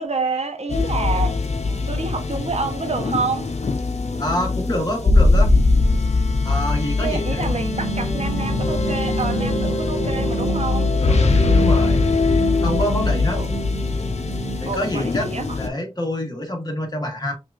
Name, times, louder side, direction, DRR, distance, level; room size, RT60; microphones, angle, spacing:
voice 1, 0.0-3.5 7.0-10.9 13.3-13.5 14.7-15.6, right 4 dB, 65° right, 0.9 m, -28 dB
sound 1, 0.7-15.7, left 3 dB, 70° left, 0.7 m, -21 dB
voice 2, 4.2-5.5 6.4-7.5 11.0-12.0 12.6-13.4 14.6-15.3 15.6-17.4, left 1 dB, 35° left, 1.5 m, -26 dB
sound 2, 7.3-15.1, right 5 dB, 90° right, 1.6 m, -30 dB
5.8 x 2.6 x 2.5 m
wide cardioid pair, 65°, 12 cm